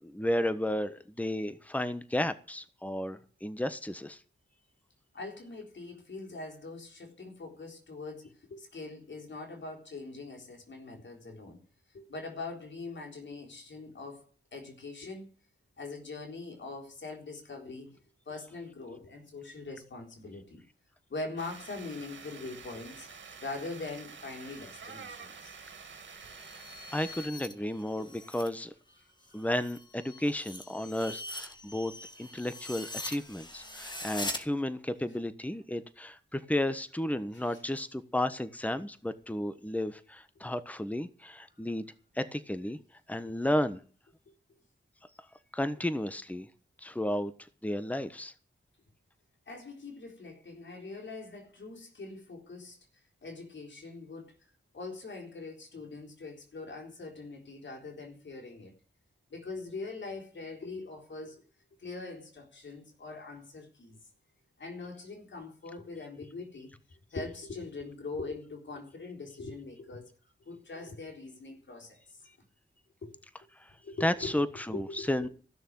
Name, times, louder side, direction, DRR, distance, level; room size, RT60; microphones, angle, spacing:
voice 1, 0.0-4.2 26.9-28.7 29.3-31.9 32.2-41.9 42.1-42.8 43.1-43.8 45.5-46.5 46.8-47.3 47.6-48.3 73.6-73.7 74.0-75.3, left 1 dB, 10° left, 1.3 m, -33 dB
voice 2, 5.1-11.6 11.9-14.3 14.5-15.3 15.8-18.0 18.3-20.6 21.1-23.1 23.4-25.6 28.0-28.1 37.3-37.6 49.5-52.8 53.2-54.4 54.7-58.7 59.3-61.4 61.8-64.0 64.6-66.7 67.1-70.1 70.5-72.0 73.0-73.1 73.8-74.3 74.7-75.3, left 3 dB, 85° left, 3.8 m, -42 dB
sound 1, 21.4-27.3, right 5 dB, 90° right, 2.0 m, -48 dB
sound 2, 26.1-28.6 28.9-34.4, left 1 dB, 25° left, 2.2 m, -42 dB
15.0 x 6.7 x 9.5 m
cardioid pair, 50°, 19 cm